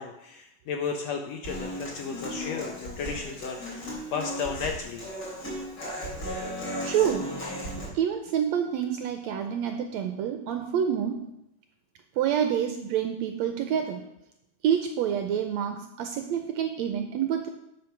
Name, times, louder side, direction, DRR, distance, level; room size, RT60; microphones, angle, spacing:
voice 1, 0.0-5.0, left 5 dB, 75° left, 4 dB, 1.6 m, -34 dB
Human voice / Acoustic guitar, 1.4-7.9, equal, 35° left, 3.6 m, -36 dB
voice 2, 6.8-7.3 7.9-11.2 12.2-14.0 14.6-17.5, right 9 dB, 80° right, 6 dB, 1.6 m, -27 dB
11.5 x 5.2 x 5.8 m, 0.83 s
omnidirectional pair, 3.7 m